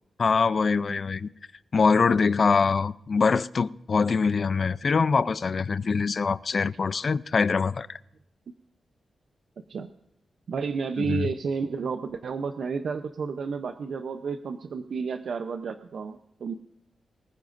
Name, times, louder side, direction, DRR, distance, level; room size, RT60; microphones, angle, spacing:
voice 1, 0.2-1.3 1.7-8.0 11.0-11.3, left 5 dB, 45° left, 0.4 m, -24 dB
voice 2, 10.5-16.5, right 5 dB, 65° right, 0.6 m, -31 dB
24.0 x 14.5 x 2.6 m
wide cardioid pair, 145°, 0 cm